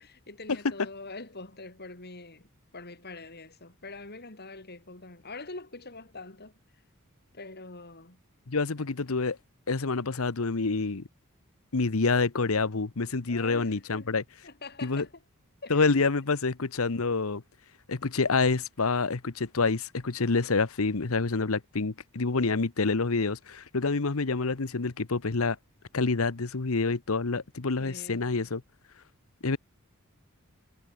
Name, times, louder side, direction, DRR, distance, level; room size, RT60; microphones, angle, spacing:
voice 1, 0.0-6.5 7.3-8.2 8.8-8.9 13.3-14.1 14.4-15.2 15.6-16.1 27.8-28.3, left 3 dB, 50° left, 5.4 m, -44 dB
voice 2, 8.5-9.4 9.7-11.0 11.7-14.2 14.8-15.0 15.7-17.4 17.9-25.6 25.9-28.6 29.4-29.6, left 4 dB, 75° left, 1.0 m, -27 dB
head